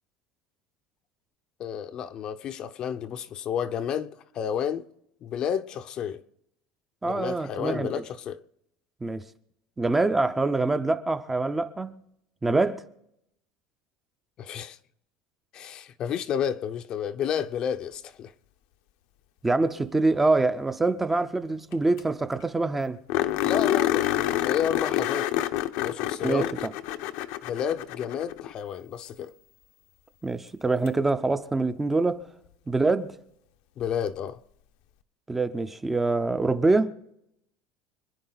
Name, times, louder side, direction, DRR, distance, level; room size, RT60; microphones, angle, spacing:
voice 1, 1.6-4.9 5.2-6.2 7.0-8.4 14.4-14.8 15.5-18.3 23.4-25.3 25.8-26.5 27.4-29.3 33.8-34.4, left 8 dB, 35° left, 0.7 m, -31 dB
voice 2, 7.0-8.0 9.0-9.2 9.8-12.0 12.4-12.8 19.4-23.0 26.2-26.5 30.2-32.2 32.7-33.1 35.3-36.9, right 3 dB, 10° right, 0.6 m, -25 dB
sound 1, 21.7-21.8 22.0-22.1 22.4-22.5 23.1-28.5 30.9-31.0 33.8-33.9, left 13 dB, 65° left, 0.8 m, -27 dB
26.5 x 10.0 x 4.0 m
cardioid pair, 155°, 2 cm